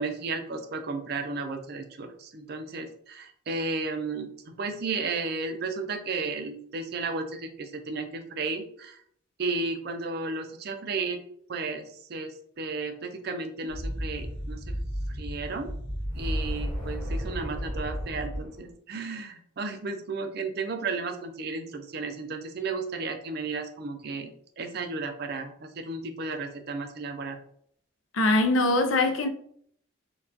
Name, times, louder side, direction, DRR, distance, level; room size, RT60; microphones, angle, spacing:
voice 1, 0.0-9.0 9.4-11.2 11.5-14.7 15.1-15.7 16.1-27.4, right 3 dB, 55° right, 0.4 m, -33 dB
sound 1, 13.7-18.7, equal, 25° left, 1.4 m, -33 dB
voice 2, 28.1-29.3, left 2 dB, 85° left, 0.5 m, -22 dB
4.4 x 2.3 x 2.6 m
head